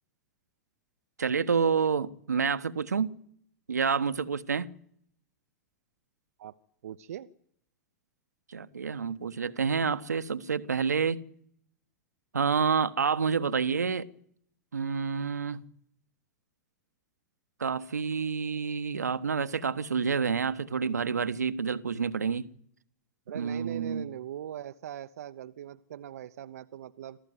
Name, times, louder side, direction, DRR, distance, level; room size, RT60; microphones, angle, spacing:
voice 1, 1.2-3.2 3.7-4.7 8.5-11.2 12.3-14.1 14.7-15.6 17.6-22.5 23.3-24.1, right 6 dB, 80° right, 1.2 m, -28 dB
voice 2, 6.8-7.3 23.3-27.2, right 10 dB, 65° right, 0.9 m, -41 dB
26.5 x 16.0 x 9.4 m
figure-of-eight pair, 100°, 9 cm